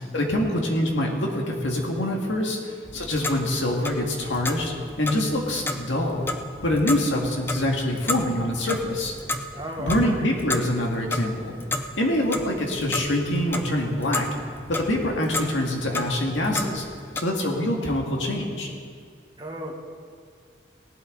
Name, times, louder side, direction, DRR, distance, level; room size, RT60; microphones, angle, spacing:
voice 1, 0.0-6.3 6.6-9.1 9.8-11.5 12.0-14.3 14.7-16.8 17.2-18.7, left 1 dB, 90° left, 0 dB, 2.0 m, -25 dB
Clock, 2.9-17.2, left 2 dB, 10° left, 0.5 m, -33 dB
voice 2, 9.5-10.2 19.4-19.7, equal, 25° right, 1 dB, 1.3 m, -34 dB
18.0 x 11.5 x 3.9 m, 2.1 s
head